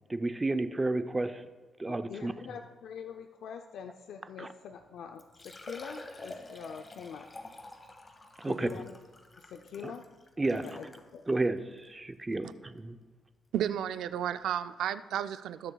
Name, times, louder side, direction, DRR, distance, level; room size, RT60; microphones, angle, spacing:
voice 1, 0.1-1.4 1.8-2.3 4.4-4.5 8.4-8.7 9.8-9.9 10.4-10.7 11.3-13.0, right 2 dB, 20° right, 0.5 m, -31 dB
voice 2, 1.8-7.3 8.4-8.9 9.4-10.1 10.5-10.9 11.1-11.2, left 7 dB, 75° left, 0.4 m, -44 dB
Liquid, 4.7-4.8 5.2-11.1 11.8-11.9 12.3-12.4 14.1-14.2 14.3-14.4, left 2 dB, 25° left, 1.1 m, -48 dB
voice 3, 13.5-15.7, right 10 dB, 85° right, 0.3 m, -32 dB
19.0 x 6.8 x 2.3 m
cardioid pair, 100°, 0 cm